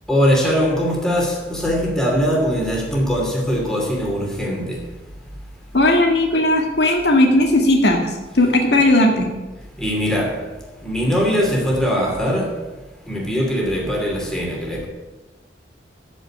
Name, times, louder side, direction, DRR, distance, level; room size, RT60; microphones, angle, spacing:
voice 1, 0.1-4.8 9.8-10.4 10.8-12.5 13.1-14.9, equal, 5° left, 2.7 m, -21 dB
voice 2, 5.7-9.3, left 1 dB, 70° left, 1.8 m, -16 dB
13.5 x 5.4 x 8.5 m
head